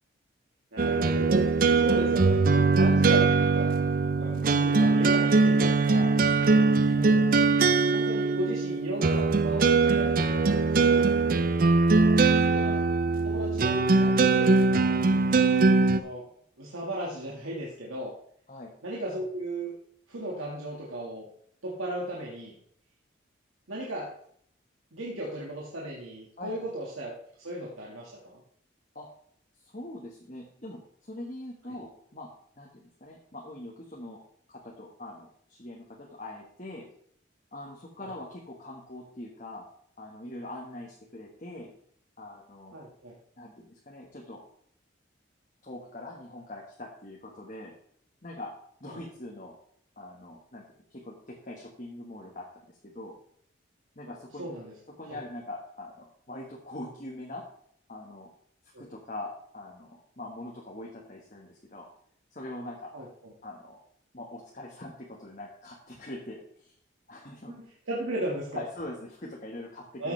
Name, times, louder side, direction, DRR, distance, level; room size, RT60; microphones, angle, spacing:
voice 1, 0.7-1.4 1.7-3.8 4.2-6.1 6.9-7.4 7.9-11.1 12.5-12.7 13.2-14.5 14.9-15.5 15.9-16.3 16.6-18.1 18.8-19.7 20.1-21.3 21.6-22.5 23.7-24.1 24.9-28.4 42.7-43.2 48.9-49.0 54.4-54.7 55.1-55.2 58.7-58.8 62.9-63.3 67.6-68.6 70.0-70.1, right 1 dB, 90° right, -3 dB, 1.9 m, -36 dB
sound 1, 0.8-16.0, right 3 dB, 45° right, 0.5 m, -22 dB
voice 2, 6.4-7.3 11.9-12.2 18.5-18.7 26.4-26.7 28.9-29.1 29.6-32.3 32.6-34.2 34.5-36.9 37.5-39.7 40.0-41.7 42.2-42.8 43.4-44.4 45.6-47.7 48.2-48.5 48.8-49.5 50.0-50.6 50.9-53.2 53.9-54.5 55.0-57.4 57.9-58.3 58.8-61.9 62.3-62.9 63.4-63.8 64.1-66.7 67.1-67.6 68.5-70.1, left 1 dB, 40° left, -2 dB, 1.6 m, -42 dB
13.5 x 8.2 x 3.4 m, 0.64 s
head